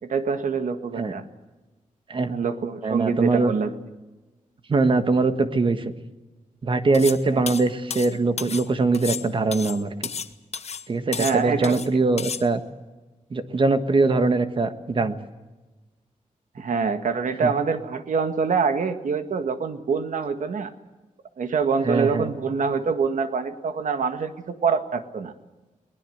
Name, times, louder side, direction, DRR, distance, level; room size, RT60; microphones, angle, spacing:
voice 1, 0.0-1.2 2.3-3.7 7.3-7.5 11.1-11.8 16.5-20.7 21.4-25.3, right 5 dB, 75° right, 8 dB, 1.8 m, -25 dB
voice 2, 2.8-3.5 4.7-5.9 6.6-10.1 10.9-12.6 13.3-15.2 17.4-17.5 21.8-22.3, right 3 dB, 40° right, 9 dB, 1.4 m, -22 dB
sound 1, 6.9-7.2 7.5-8.7 8.9-10.3 10.5-10.8 11.1-11.9 12.2-12.4, left 6 dB, 55° left, 1.1 m, -32 dB
22.5 x 20.0 x 8.0 m, 1.2 s
wide cardioid pair, 170°, 13 cm